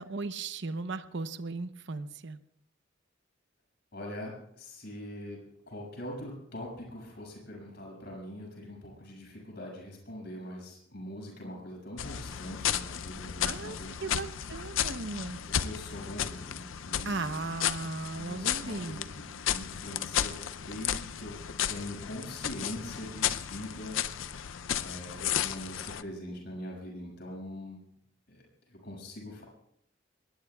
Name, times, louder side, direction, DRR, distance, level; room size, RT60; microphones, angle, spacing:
voice 1, 0.0-2.4 13.4-13.8 14.0-15.4 17.0-19.0, right 3 dB, 65° right, 11 dB, 0.9 m, -36 dB
voice 2, 3.9-14.2 15.4-17.4 18.2-21.4 21.7-24.0 24.8-27.8 28.3-29.4, left 1 dB, 60° left, -1 dB, 6.7 m, -43 dB
sound 1, 12.0-26.0, left 9 dB, 90° left, 0.6 m, -34 dB
24.0 x 20.5 x 2.4 m, 0.72 s
head